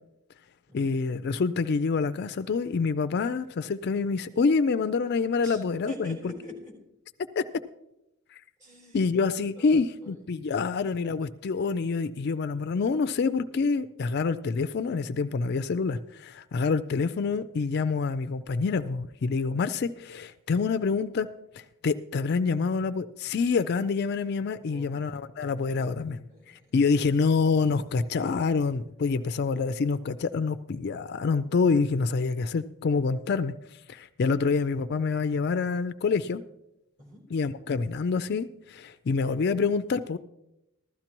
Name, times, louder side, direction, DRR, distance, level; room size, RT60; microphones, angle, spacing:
voice 1, 0.7-6.3 7.4-7.5 8.3-8.4 8.9-21.3 21.5-26.2 26.7-36.4 37.3-40.2, left 4 dB, 50° left, 12 dB, 0.4 m, -27 dB
voice 2, 5.9-6.7 8.6-9.2 9.5-10.4 24.6-25.2 25.5-27.1 37.0-37.2, left 1 dB, 35° right, -2 dB, 3.8 m, -47 dB
15.5 x 13.0 x 3.0 m, 0.87 s
head